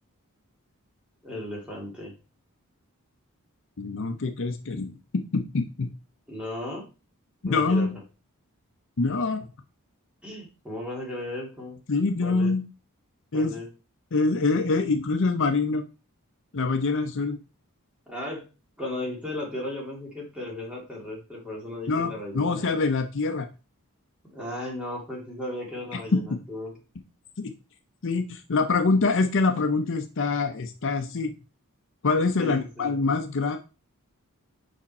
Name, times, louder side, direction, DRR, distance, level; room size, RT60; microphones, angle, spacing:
voice 1, 1.2-2.1 6.3-6.9 7.5-8.0 10.2-11.8 12.2-12.5 13.3-13.7 18.1-18.5 18.8-22.7 24.3-26.8 32.4-32.9, left 1 dB, 5° right, -3 dB, 2.2 m, -35 dB
voice 2, 3.8-5.9 7.4-7.9 9.0-9.4 11.9-12.6 13.3-13.5 14.1-15.8 16.5-17.4 21.9-23.5 25.9-26.2 27.4-27.5 28.0-31.3 32.0-33.6, left 3 dB, 60° left, 6 dB, 0.6 m, -25 dB
5.4 x 5.0 x 4.2 m, 0.32 s
head